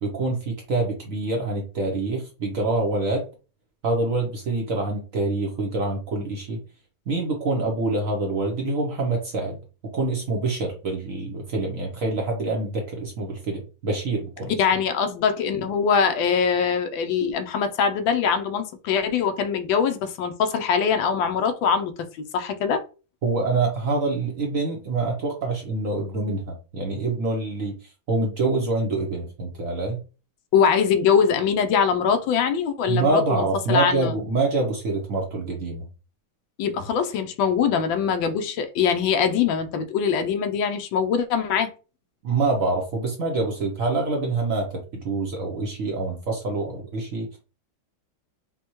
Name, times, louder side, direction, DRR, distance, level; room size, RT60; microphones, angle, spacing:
voice 1, 0.0-3.2 3.8-6.6 7.1-9.6 9.9-14.5 23.2-30.0 32.9-35.9 42.2-47.4, right 3 dB, 60° right, 0.9 m, -26 dB
voice 2, 14.6-21.9 22.3-22.8 30.5-34.2 36.6-41.7, left 6 dB, 70° left, 1.3 m, -22 dB
5.4 x 2.3 x 3.0 m
omnidirectional pair, 2.3 m